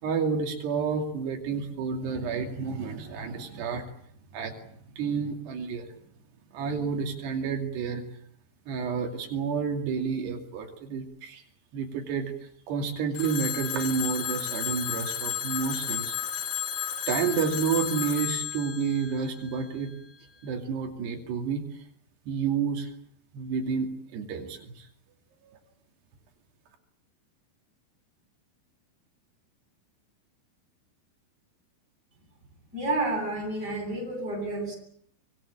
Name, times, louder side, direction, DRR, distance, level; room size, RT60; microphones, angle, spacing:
voice 1, 0.0-3.8 4.3-4.5 5.0-5.9 6.5-8.0 8.7-11.4 11.7-12.3 12.7-16.2 17.1-19.9 20.4-21.6 22.3-22.9 23.3-24.9, right 6 dB, 90° right, 3 dB, 4.7 m, -30 dB
Telephone, 13.1-20.0, left 9 dB, 55° left, 1.6 m, -33 dB
voice 2, 32.7-34.8, right 2 dB, 25° right, 3 dB, 8.6 m, -30 dB
25.0 x 21.5 x 8.9 m, 0.66 s
omnidirectional pair, 4.6 m